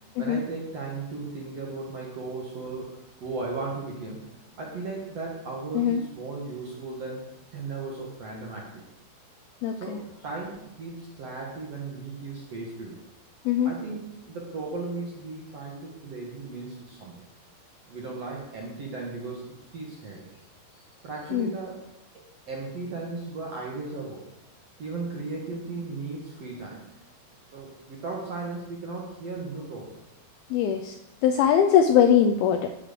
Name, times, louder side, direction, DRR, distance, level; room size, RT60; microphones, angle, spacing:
voice 1, 0.2-4.3 4.6-8.8 9.8-13.0 13.6-17.1 17.9-20.3 21.0-21.8 22.1-24.2 24.8-26.9 27.5-29.9, right 3 dB, 55° right, -3 dB, 2.0 m, -36 dB
voice 2, 9.6-10.0 13.5-13.7 21.3-21.5 30.5-31.0 31.2-32.7, left 8 dB, 80° left, 5 dB, 2.2 m, -21 dB
12.5 x 4.9 x 6.9 m, 0.88 s
omnidirectional pair, 5.0 m